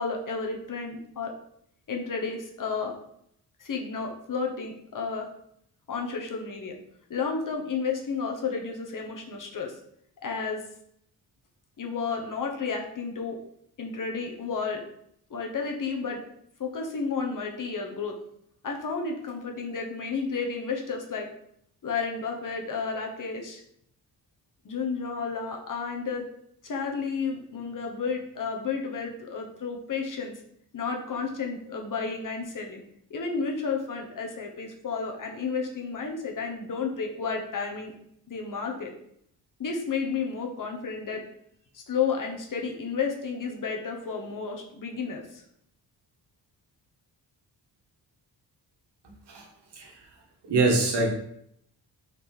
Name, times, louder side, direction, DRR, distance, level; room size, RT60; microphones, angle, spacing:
voice 1, 0.0-1.3 1.9-2.9 3.6-5.3 5.9-6.8 7.1-9.8 10.2-10.6 11.8-13.4 13.8-14.8 15.3-16.2 16.6-18.1 18.6-21.3 21.8-23.6 24.6-26.2 26.6-30.4 30.7-32.8 33.1-37.9 38.3-38.9 39.6-41.2 41.7-45.4, left 5 dB, 50° left, 2 dB, 1.2 m, -32 dB
voice 2, 50.5-51.1, right 2 dB, 75° right, 1 dB, 1.6 m, -23 dB
5.1 x 4.4 x 4.5 m, 0.71 s
wide cardioid pair, 130°, 41 cm